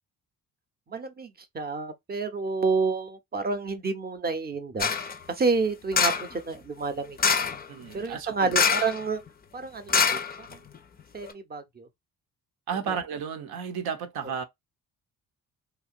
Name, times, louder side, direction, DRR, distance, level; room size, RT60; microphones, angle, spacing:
voice 1, 0.9-4.9 5.3-7.2 7.9-9.2 9.5-10.6 11.1-11.9 12.9-13.0, right 4 dB, 25° right, 0.7 m, -29 dB
sound 1, 4.8-5.1 5.9-6.3 7.2-7.6 8.5-9.0 9.3-9.4 9.9-10.8 11.2-11.3, left 6 dB, 25° left, 0.5 m, -24 dB
voice 2, 7.7-8.5 12.7-14.4, right 6 dB, 60° right, 0.7 m, -33 dB
2.9 x 2.1 x 2.4 m
hypercardioid pair, 55°, 41 cm